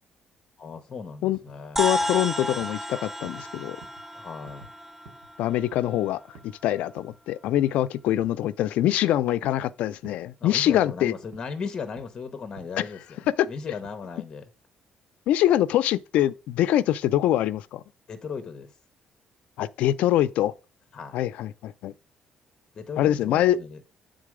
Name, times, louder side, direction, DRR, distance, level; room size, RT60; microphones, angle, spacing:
voice 1, 0.6-1.8 4.1-4.7 10.4-14.5 18.1-18.7 20.9-21.2 22.7-23.8, left 5 dB, 30° left, 0.7 m, -37 dB
sound 1, 1.3-1.6 2.0-2.2 2.6-2.8 3.2-3.5 3.8-4.0 4.5-4.7 5.1-5.3 5.7-5.9 6.3-6.6 7.0-7.2 7.6-7.8 8.2-8.4 8.8-9.1 9.4-9.7 10.0-10.3 10.7-10.9 11.3-11.5 12.0-12.2 12.6-12.8 13.2-13.5 13.8-13.9, right 3 dB, 75° right, 1.2 m, -50 dB
voice 2, 1.8-3.8 5.4-11.1 13.4-13.5 15.3-17.8 19.6-20.5 21.1-21.9 23.0-23.6, left 13 dB, 90° left, 0.4 m, -24 dB
sound 2, 1.8-6.4, equal, 5° right, 0.4 m, -32 dB
7.5 x 3.8 x 4.8 m
cardioid pair, 165°, 2 cm